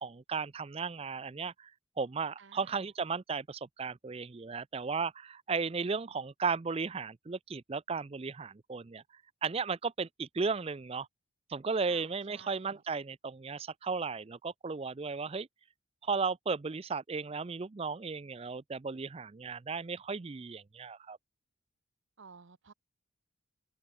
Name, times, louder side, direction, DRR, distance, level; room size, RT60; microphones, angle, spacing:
voice 1, 0.0-1.7 2.0-9.0 9.4-11.1 11.5-15.5 16.0-21.2, right 5 dB, 30° right, 0.4 m, -35 dB
voice 2, 2.4-2.8 11.8-12.8 22.2-22.7, right 5 dB, 65° right, 0.8 m, -55 dB
open air
head